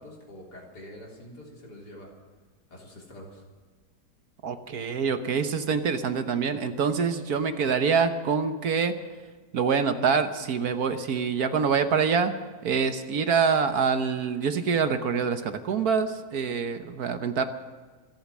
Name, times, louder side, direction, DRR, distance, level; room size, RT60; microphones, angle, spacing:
voice 1, 0.0-2.1 2.7-3.4, left 1 dB, 75° left, -2 dB, 4.2 m, -45 dB
voice 2, 4.4-8.9 9.5-12.3 12.6-17.4, right 6 dB, 65° right, 8 dB, 1.5 m, -25 dB
26.0 x 8.7 x 6.2 m, 1.4 s
omnidirectional pair, 1.8 m